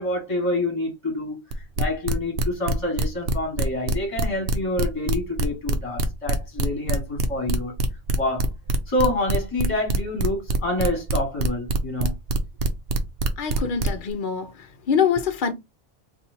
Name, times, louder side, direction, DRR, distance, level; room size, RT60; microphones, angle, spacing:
voice 1, 0.0-1.4 1.8-7.7 8.1-8.5 8.9-12.1, left 1 dB, 25° left, 1.6 m, -27 dB
sound 1, 1.5-14.1, right 2 dB, 60° right, 0.7 m, -24 dB
voice 2, 13.4-14.5 14.9-15.5, left 7 dB, 55° left, 0.6 m, -24 dB
4.1 x 2.5 x 2.7 m
omnidirectional pair, 1.2 m